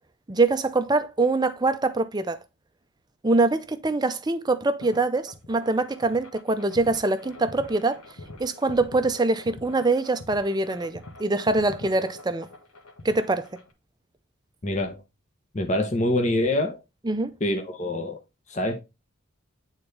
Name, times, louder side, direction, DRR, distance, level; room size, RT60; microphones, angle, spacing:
voice 1, 0.3-2.4 3.2-8.0 8.4-12.5 13.0-13.5 17.1-17.3, right 3 dB, 20° right, 0.5 m, -24 dB
sound 1, 4.8-13.7, left 2 dB, 90° left, 1.5 m, -44 dB
voice 2, 14.6-15.0 15.5-16.8 17.4-18.2 18.5-18.8, left 1 dB, 35° left, 0.9 m, -25 dB
8.9 x 4.0 x 3.3 m
head